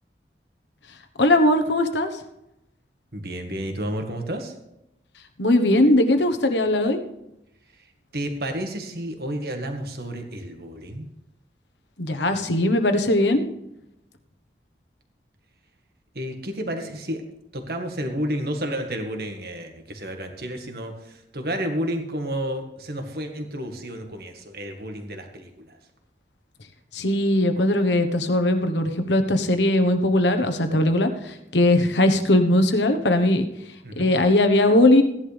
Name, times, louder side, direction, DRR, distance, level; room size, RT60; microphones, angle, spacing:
voice 1, 1.2-2.1 5.4-7.0 12.0-13.5 26.9-33.5 34.0-35.0, left 1 dB, 90° left, 7 dB, 1.2 m, -19 dB
voice 2, 3.1-4.5 7.7-11.1 16.1-17.2 17.5-25.8 33.8-34.1, equal, 60° right, 4 dB, 1.7 m, -31 dB
16.0 x 11.0 x 3.5 m, 0.86 s
head